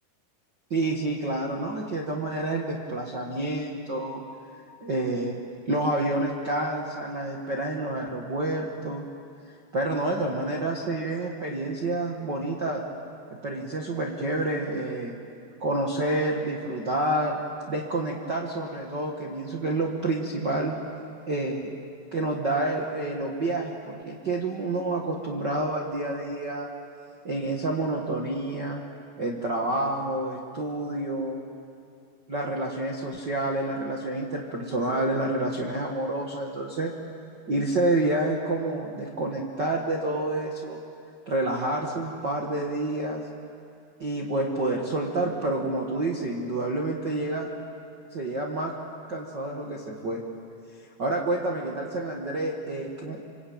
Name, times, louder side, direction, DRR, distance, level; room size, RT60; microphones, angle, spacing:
voice 1, 0.7-4.2 4.8-5.4 5.7-9.0 9.7-12.8 13.4-15.1 15.6-17.4 17.7-20.7 21.3-21.7 22.1-26.7 27.2-28.8 29.2-31.4 32.3-36.9 37.5-40.8 41.3-43.2 44.0-47.5 48.1-48.7 49.1-50.2 51.0-53.2, right 2 dB, 65° right, -2 dB, 1.0 m, -28 dB
27.0 x 25.0 x 8.8 m, 2.6 s
omnidirectional pair, 5.0 m